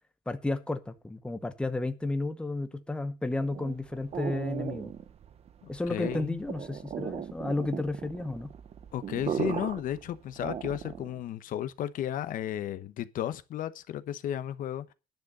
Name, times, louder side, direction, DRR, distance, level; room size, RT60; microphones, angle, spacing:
voice 1, 0.3-4.9 5.7-8.5, left 2 dB, 5° left, 0.8 m, -32 dB
sound 1, 3.3-11.2, right 8 dB, 40° right, 0.9 m, -37 dB
voice 2, 5.6-6.4 8.9-14.9, left 11 dB, 60° left, 0.9 m, -34 dB
10.5 x 6.5 x 6.7 m
cardioid pair, 140°, 16 cm